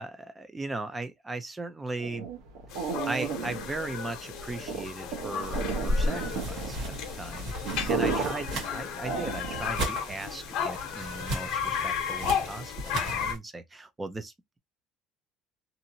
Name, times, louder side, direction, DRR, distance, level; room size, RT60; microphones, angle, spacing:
voice 1, 0.0-2.3 3.0-7.5 7.9-14.6, right 2 dB, 10° right, 0.5 m, -38 dB
sound 1, 2.0-9.8, right 5 dB, 80° right, 1.0 m, -34 dB
sound 2, 2.7-13.3, left 8 dB, 60° left, 0.9 m, -34 dB
sound 3, 5.4-13.4, equal, 55° right, 1.5 m, -35 dB
2.8 x 2.6 x 2.7 m
cardioid pair, 155°, 0 cm